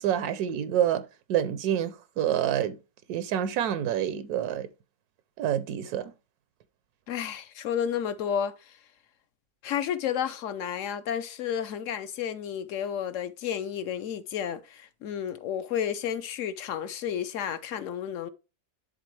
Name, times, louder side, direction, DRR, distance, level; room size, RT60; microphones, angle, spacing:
voice 1, 0.0-2.8 3.1-4.7 5.4-6.1, right 10 dB, 80° right, 1.1 m, -27 dB
voice 2, 7.1-8.8 9.6-18.3, left 9 dB, 65° left, 0.9 m, -31 dB
10.5 x 3.9 x 3.2 m
omnidirectional pair, 1.6 m